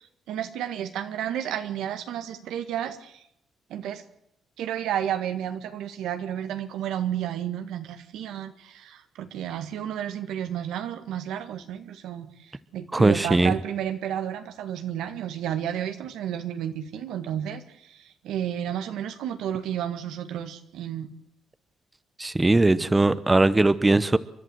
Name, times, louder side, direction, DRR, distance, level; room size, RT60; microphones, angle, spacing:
voice 1, 0.0-3.2 3.7-4.0 4.6-21.1 22.8-23.2, right 10 dB, 85° right, 8 dB, 1.8 m, -32 dB
voice 2, 12.9-13.5 22.2-24.2, right 2 dB, 15° right, 15 dB, 0.9 m, -20 dB
29.0 x 12.0 x 8.0 m, 0.76 s
cardioid pair, 90°, 0 cm